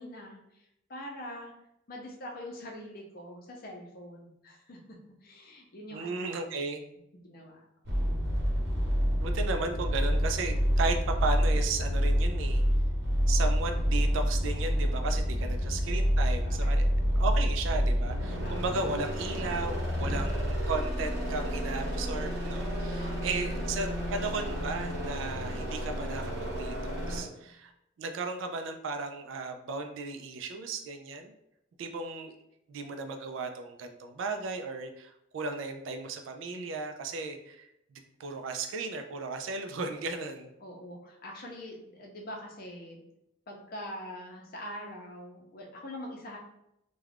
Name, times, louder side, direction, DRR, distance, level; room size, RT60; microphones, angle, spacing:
voice 1, 0.0-1.5 1.9-4.8 5.2-6.4 7.2-7.5 15.3-15.9 16.4-16.9 18.4-18.6 22.9-23.5 40.6-43.0 43.5-46.4, left 1 dB, 50° left, 0 dB, 0.6 m, -44 dB
voice 2, 5.9-6.8 9.2-12.6 13.3-16.9 17.2-27.7 28.0-31.3 31.8-32.3 32.7-40.5, right 3 dB, 85° right, 6 dB, 0.3 m, -35 dB
sound 1, 7.8-27.2, equal, 60° right, 0.9 m, -28 dB
2.4 x 2.2 x 3.3 m, 0.81 s
head